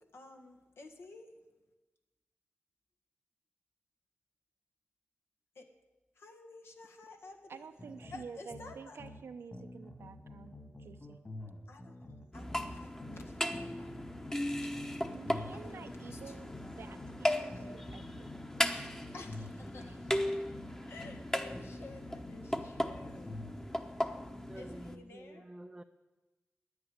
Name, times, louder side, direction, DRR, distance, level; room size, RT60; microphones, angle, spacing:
voice 1, 0.1-1.3 5.6-5.7 6.2-7.6 8.1-9.0 11.7-12.0 12.3-14.5 15.5-17.1 19.1-20.2 20.9-23.4 24.6-25.5, left 3 dB, 80° left, 1.6 m, -52 dB
voice 2, 7.5-11.2 15.1-18.3 19.8-20.0, right 6 dB, 80° right, 0.7 m, -50 dB
sound 1, 7.8-9.2 9.5-13.2 13.5-17.2 17.5-21.2 21.5-23.6, left 1 dB, 30° left, 2.3 m, -49 dB
sound 2, 12.3-25.0, left 1 dB, 15° left, 1.0 m, -37 dB
voice 3, 24.5-25.8, right 1 dB, 15° right, 0.5 m, -49 dB
10.0 x 9.7 x 9.9 m
wide cardioid pair, 80°, 4 cm